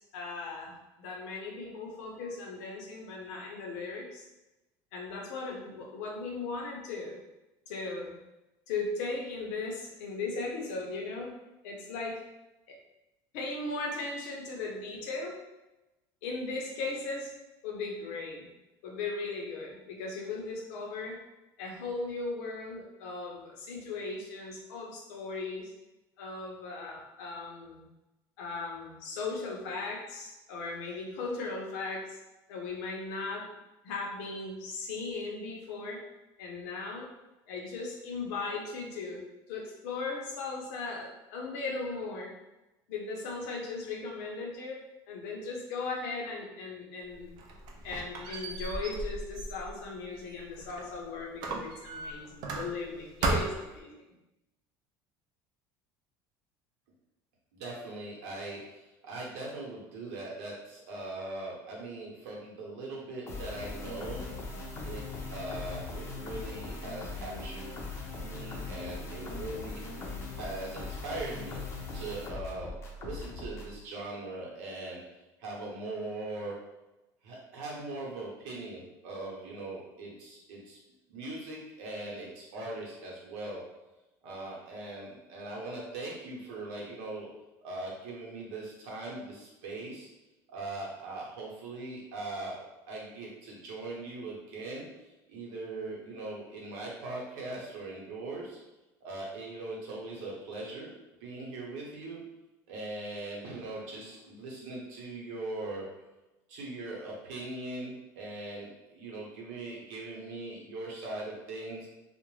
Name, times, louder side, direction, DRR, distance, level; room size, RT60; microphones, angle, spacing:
voice 1, 0.0-4.3 4.9-7.2 7.7-8.2 8.7-11.3 11.6-12.2 13.3-15.4 16.2-17.3 17.6-18.5 18.8-21.2 21.6-25.7 26.2-27.9 28.4-32.2 32.5-33.5 33.8-36.0 36.4-37.1 37.5-39.2 39.5-42.3 42.9-47.3 47.8-54.0, left 3 dB, 90° left, -1 dB, 0.7 m, -37 dB
Squeak, 47.1-50.9 51.4-52.9 53.2-53.8, right 3 dB, 55° right, 0.4 m, -35 dB
voice 2, 57.5-64.6 64.8-65.0 65.3-67.7 68.1-69.8 70.4-71.6 71.9-72.7 73.0-75.0 75.4-76.6 77.2-80.8 81.1-83.6 84.2-87.3 87.6-90.1 90.5-94.9 95.3-98.6 99.0-100.9 101.2-102.2 102.7-105.8 106.5-111.9, right 2 dB, 85° right, -3 dB, 0.9 m, -40 dB
sound 1, 63.3-73.8, left 3 dB, 30° left, 0.5 m, -40 dB
2.5 x 2.1 x 3.1 m, 1.0 s
cardioid pair, 155°, 9 cm